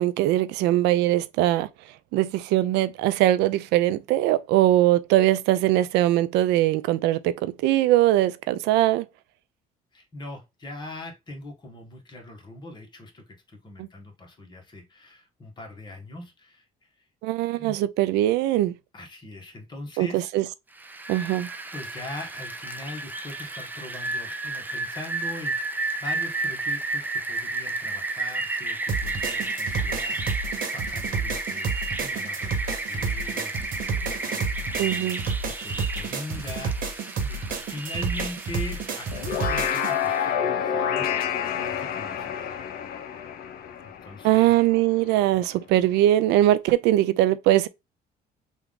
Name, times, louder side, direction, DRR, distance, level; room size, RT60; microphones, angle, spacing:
voice 1, 0.0-1.7 2.1-9.0 13.8-13.9 17.2-18.8 20.0-20.4 21.1-21.5 34.8-35.2 44.2-47.7, right 14 dB, 90° right, 0.4 m, -21 dB
voice 2, 9.9-16.6 17.5-17.8 18.9-20.3 21.4-35.2 35.4-42.6 43.8-44.5, left 1 dB, 25° left, 1.4 m, -41 dB
Rain, 20.8-40.2, right 3 dB, 10° right, 0.5 m, -32 dB
sound 1, 28.9-39.9, right 4 dB, 55° right, 1.1 m, -30 dB
sound 2, 39.1-44.6, left 8 dB, 60° left, 0.6 m, -28 dB
3.4 x 2.5 x 3.6 m
cardioid pair, 110°, 17 cm